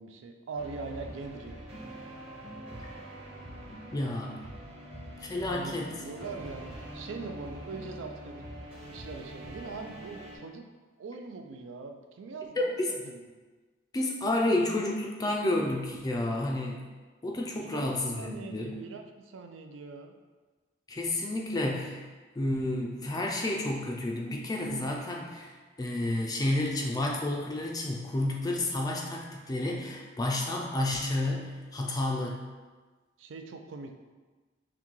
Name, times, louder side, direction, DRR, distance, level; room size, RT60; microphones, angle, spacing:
voice 1, 0.0-1.6 5.5-10.7 11.0-13.2 17.5-20.1 33.2-33.9, right 4 dB, 85° right, 5 dB, 0.4 m, -42 dB
sound 1, 0.6-10.4, right 1 dB, 30° right, 0.8 m, -44 dB
voice 2, 3.9-4.4 5.2-5.9 12.6-12.9 13.9-16.8 17.2-18.8 20.9-22.0 22.4-32.4, left 1 dB, 20° left, -1 dB, 0.4 m, -30 dB
5.8 x 2.2 x 3.0 m, 1.3 s
head